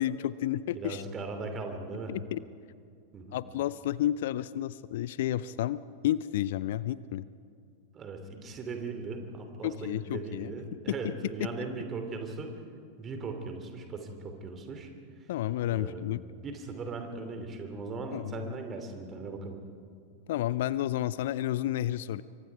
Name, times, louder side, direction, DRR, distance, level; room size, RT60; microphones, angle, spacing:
voice 1, 0.0-1.0 2.1-2.4 3.3-7.3 9.6-10.8 11.0-11.5 15.3-16.2 18.1-18.3 20.3-22.2, left 13 dB, 55° left, 18 dB, 0.5 m, -31 dB
voice 2, 0.7-2.1 3.1-3.4 7.9-12.5 13.0-14.9 15.7-19.6, right 3 dB, 25° right, 5 dB, 3.0 m, -38 dB
27.5 x 24.0 x 4.8 m, 2.3 s
figure-of-eight pair, 90°, 0 cm